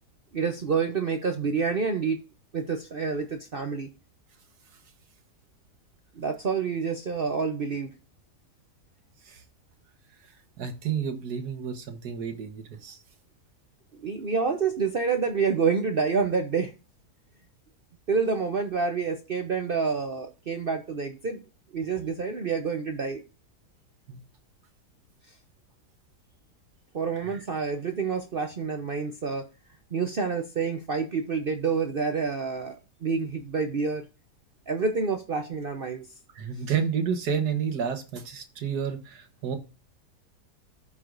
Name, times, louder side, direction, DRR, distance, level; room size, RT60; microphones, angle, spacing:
voice 1, 0.3-2.2 2.5-3.9 6.2-7.9 14.0-16.7 18.1-21.4 21.7-23.2 26.9-29.5 29.9-34.1 34.7-36.1, right 5 dB, 45° right, 0.7 m, -28 dB
voice 2, 10.6-13.0 24.1-24.2 27.2-27.3 36.3-39.6, right 7 dB, 75° right, 1.8 m, -30 dB
14.0 x 4.7 x 2.5 m
omnidirectional pair, 1.7 m